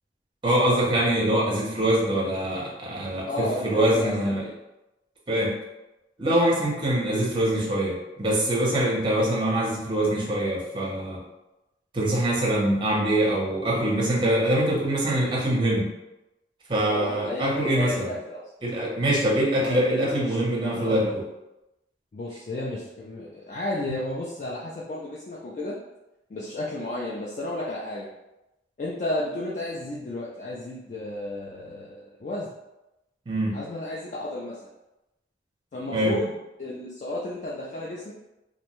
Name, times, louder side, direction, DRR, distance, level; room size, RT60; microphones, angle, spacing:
voice 1, 0.4-4.4 5.3-5.5 6.2-11.2 11.9-15.9 16.7-18.1 18.6-21.2 23.9-24.0 33.3-33.6 35.9-36.2, right 1 dB, 25° right, -3 dB, 0.6 m, -24 dB
voice 2, 3.3-4.5 14.3-14.4 16.8-18.4 19.5-21.1 22.1-25.8 26.3-28.1 28.8-32.5 33.5-34.7 35.7-38.1, left 1 dB, 40° left, -4 dB, 0.3 m, -33 dB
2.6 x 2.1 x 2.9 m, 0.96 s
head